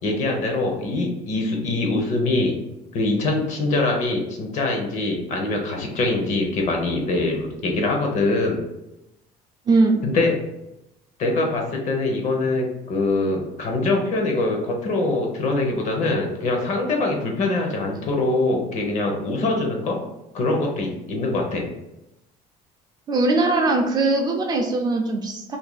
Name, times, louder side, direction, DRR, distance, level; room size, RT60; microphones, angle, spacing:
voice 1, 0.0-2.5 2.9-8.6 10.0-10.4 11.2-20.0 20.3-21.6, left 2 dB, 50° left, 1 dB, 0.8 m, -23 dB
voice 2, 9.7-10.0 23.1-25.6, right 3 dB, 25° right, 1 dB, 0.4 m, -20 dB
2.7 x 2.6 x 3.9 m, 0.89 s
cardioid pair, 150°, 16 cm